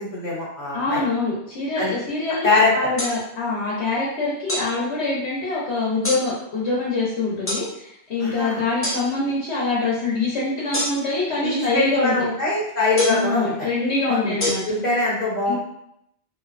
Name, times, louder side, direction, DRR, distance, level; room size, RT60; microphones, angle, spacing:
voice 1, 0.0-1.0 1.7-1.9 2.4-2.9 8.2-8.6 11.4-13.7 14.1-15.5, left 2 dB, 40° left, -8 dB, 0.9 m, -23 dB
voice 2, 0.7-12.1 13.1-14.6 15.5-15.6, left 3 dB, 70° left, -7 dB, 1.0 m, -24 dB
sound 1, 3.0-3.1 4.5-4.7 6.0-6.2 7.5-7.6 8.8-9.0 10.7-11.2 13.0-13.3 14.4-14.5, left 1 dB, 25° left, 0.3 m, -25 dB
2.8 x 2.0 x 2.4 m, 0.76 s
omnidirectional pair, 1.2 m